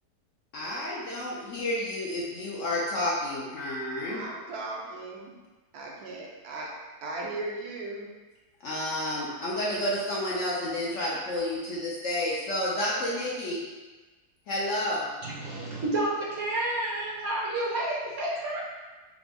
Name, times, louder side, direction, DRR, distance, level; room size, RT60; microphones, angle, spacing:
voice 1, 0.5-4.2 8.6-13.6 14.5-15.1, left 1 dB, 60° left, -6 dB, 0.8 m, -30 dB
voice 2, 4.1-5.3 5.7-6.7 7.0-8.1, right 2 dB, 70° right, -2 dB, 1.1 m, -37 dB
voice 3, 15.2-18.6, right 1 dB, 50° right, -6 dB, 0.9 m, -30 dB
4.8 x 2.1 x 3.5 m, 1.2 s
omnidirectional pair, 1.7 m